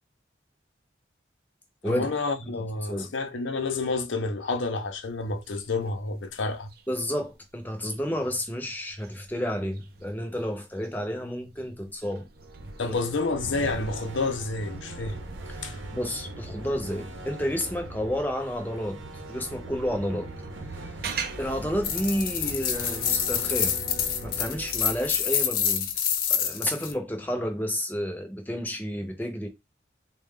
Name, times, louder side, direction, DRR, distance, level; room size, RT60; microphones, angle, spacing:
voice 1, 1.8-6.7 12.8-15.2 15.6-15.8, left 3 dB, 85° left, 0.7 m, -29 dB
sound 1, 4.9-18.5 19.0-23.4, right 5 dB, 50° right, 0.4 m, -43 dB
voice 2, 6.9-12.3 12.9-13.0 15.5-19.0 19.3-20.3 21.4-23.8 24.2-25.8 26.3-29.5, equal, 10° left, 0.6 m, -31 dB
sound 2, 12.2-26.3, right 1 dB, 85° right, 0.8 m, -41 dB
sound 3, 21.8-26.9, left 8 dB, 50° left, 0.5 m, -27 dB
3.7 x 2.2 x 3.6 m
head